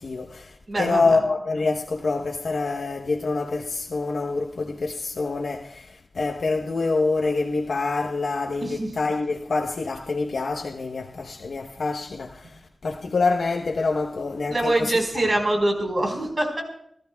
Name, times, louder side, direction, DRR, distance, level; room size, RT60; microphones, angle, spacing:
voice 1, 0.0-15.2, left 3 dB, 85° left, 1.0 m, -26 dB
voice 2, 0.7-1.0 8.6-8.9 14.5-16.6, right 1 dB, 45° right, 4.4 m, -24 dB
29.0 x 13.5 x 2.3 m
wide cardioid pair, 100°, 0 cm